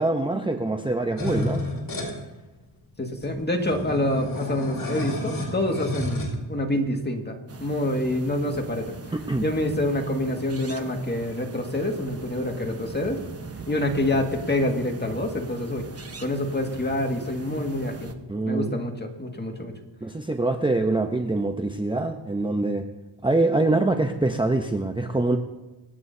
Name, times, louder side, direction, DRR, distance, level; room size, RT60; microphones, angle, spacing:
voice 1, 0.0-1.6 9.1-9.4 18.3-18.8 20.0-22.9 23.2-25.4, right 2 dB, 10° right, 5 dB, 0.7 m, -24 dB
sound 1, 1.2-2.1 2.9-3.0 3.1-6.3, left 1 dB, 50° left, 5.1 m, -31 dB
voice 2, 3.0-9.0 9.4-13.2 13.7-15.9 16.2-18.1 18.5-19.7, left 1 dB, 25° left, 2 dB, 1.9 m, -27 dB
sound 2, 7.5-18.1, right 4 dB, 35° right, 1.2 m, -40 dB
26.0 x 9.8 x 2.8 m, 1.1 s
cardioid pair, 80°, 44 cm